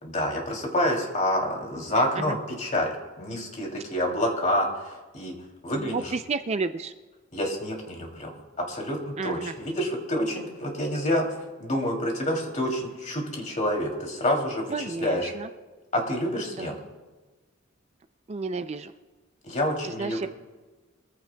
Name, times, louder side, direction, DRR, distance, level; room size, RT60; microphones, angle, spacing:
voice 1, 0.0-2.9 3.2-5.3 5.6-6.1 7.3-8.3 8.7-11.3 11.6-15.3 15.9-16.7 19.4-20.3, left 1 dB, 35° left, 0 dB, 2.9 m, -28 dB
voice 2, 5.9-6.9 9.2-9.5 14.7-15.5 16.6-16.7 18.3-18.9 19.8-20.3, right 4 dB, 30° right, 9 dB, 0.4 m, -31 dB
23.5 x 15.5 x 2.3 m, 1.3 s
head